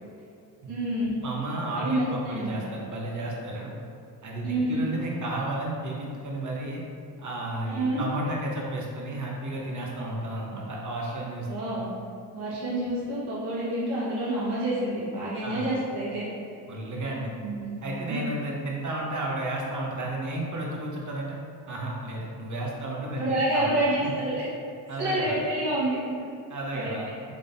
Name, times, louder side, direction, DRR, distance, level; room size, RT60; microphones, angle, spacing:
voice 1, 0.7-1.2 1.7-2.6 4.4-4.9 7.7-8.0 11.5-11.9 12.3-16.2 17.4-17.8 18.1-18.2 23.2-24.4 25.0-26.0 26.7-26.9, right 1 dB, 55° right, -10 dB, 1.4 m, -28 dB
voice 2, 1.2-3.7 4.2-6.8 7.2-11.5 15.4-15.7 16.7-17.3 17.8-21.4 21.7-23.7 24.0-24.1 24.9-25.4 26.5-27.1, right 1 dB, 40° right, -2 dB, 1.0 m, -32 dB
3.7 x 3.3 x 2.6 m, 2.5 s
supercardioid pair, 50°, 46 cm